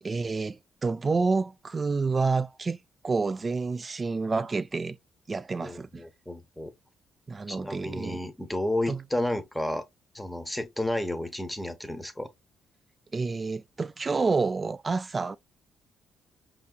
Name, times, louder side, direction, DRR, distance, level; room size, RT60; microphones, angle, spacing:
voice 1, 0.0-5.0 5.3-6.0 7.3-8.2 8.9-9.0 13.1-15.4, right 4 dB, 30° right, 0.4 m, -29 dB
voice 2, 5.6-6.7 7.5-9.8 10.1-12.3, left 1 dB, 5° left, 0.9 m, -32 dB
5.5 x 2.8 x 2.2 m
cardioid pair, 90°, 0 cm